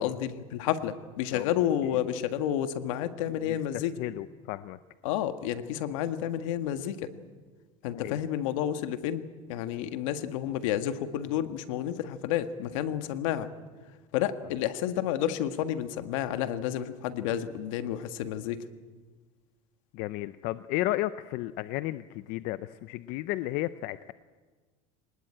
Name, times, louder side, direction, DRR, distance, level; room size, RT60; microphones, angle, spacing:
voice 1, 0.0-3.9 5.0-7.1 7.8-9.2 9.5-13.5 14.1-18.6, left 11 dB, 85° left, 9 dB, 1.7 m, -30 dB
voice 2, 3.4-4.8 7.8-8.2 19.9-24.1, left 16 dB, 60° left, 14 dB, 0.6 m, -33 dB
24.5 x 20.0 x 8.9 m, 1.4 s
supercardioid pair, 135°, 16 cm